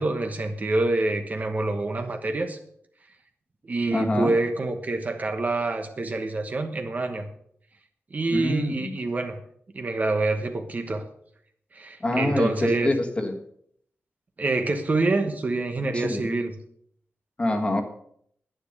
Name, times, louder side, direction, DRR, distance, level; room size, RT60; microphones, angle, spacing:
voice 1, 0.0-2.6 3.6-7.3 8.1-9.4 9.7-11.0 11.7-12.9 14.4-16.5, right 2 dB, 35° right, 6 dB, 1.2 m, -26 dB
voice 2, 3.9-4.3 8.3-9.0 12.0-13.3 15.9-16.3 17.4-17.8, left 2 dB, 25° left, 4 dB, 1.6 m, -26 dB
10.5 x 9.8 x 6.5 m, 0.67 s
wide cardioid pair, 155°, 4 cm